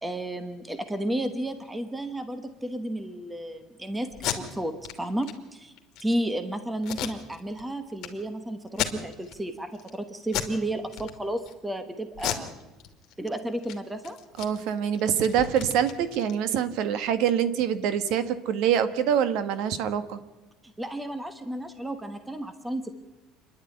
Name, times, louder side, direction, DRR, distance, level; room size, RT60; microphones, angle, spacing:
voice 1, 0.0-5.7 6.0-12.6 13.2-14.2 20.6-23.0, right 1 dB, 5° right, 9 dB, 1.2 m, -32 dB
Packing tape duct tape, 4.1-4.4 4.8-4.9 5.2-5.3 5.8-6.1 6.8-7.6 8.0-8.1 8.7-9.4 9.7-10.0 10.3-10.6 10.9-11.5 12.1-13.3 13.6-13.8 14.0-16.7, left 12 dB, 50° left, 2.6 m, -33 dB
voice 2, 14.4-20.2, right 9 dB, 60° right, 12 dB, 1.4 m, -25 dB
27.0 x 11.0 x 9.8 m, 1.1 s
cardioid pair, 160°, 0 cm